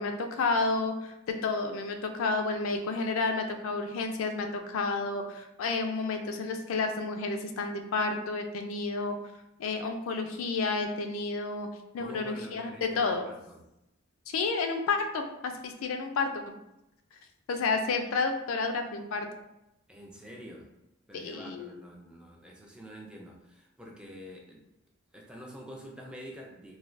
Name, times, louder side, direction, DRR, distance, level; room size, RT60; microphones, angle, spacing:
voice 1, 0.0-9.2 9.6-11.7 11.9-13.2 14.3-16.3 17.5-19.3 21.1-21.7, left 3 dB, 70° left, 5 dB, 0.3 m, -30 dB
voice 2, 12.0-13.6 19.9-20.7 21.1-24.6 25.1-26.8, equal, 5° right, -1 dB, 0.3 m, -47 dB
3.1 x 2.2 x 2.5 m, 0.88 s
head